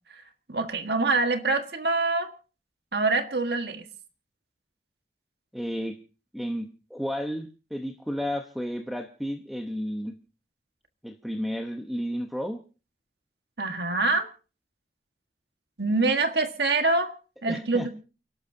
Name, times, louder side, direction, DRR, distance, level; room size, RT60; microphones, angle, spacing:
voice 1, 0.5-2.3 2.9-3.8 13.6-14.3 15.8-17.1 17.4-17.9, right 3 dB, 65° right, 1.7 m, -25 dB
voice 2, 5.5-6.0 6.3-10.2 11.0-12.6 17.5-17.9, equal, ahead, 0.9 m, -32 dB
29.5 x 12.0 x 2.7 m
head